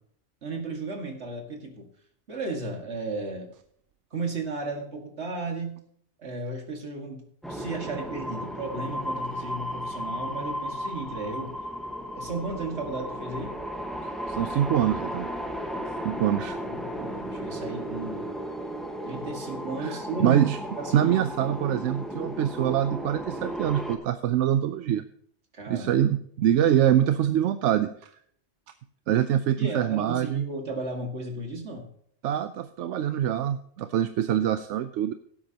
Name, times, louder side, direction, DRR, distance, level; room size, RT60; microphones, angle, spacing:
voice 1, 0.4-1.9 2.3-3.5 4.1-5.8 6.2-7.2 7.5-11.6 12.1-13.6 16.7-18.3 19.0-20.4 20.8-21.2 25.5-26.1 29.6-31.9, right 3 dB, 70° right, 2 dB, 2.2 m, -34 dB
sound 1, 7.4-24.0, equal, ahead, 1.3 m, -34 dB
voice 2, 14.3-15.3 16.0-16.6 19.8-19.9 20.2-20.6 20.9-25.0 25.7-27.9 29.1-30.4 32.2-35.1, right 10 dB, 90° right, 10 dB, 0.9 m, -24 dB
17.0 x 8.6 x 2.9 m, 0.62 s
omnidirectional pair, 1.2 m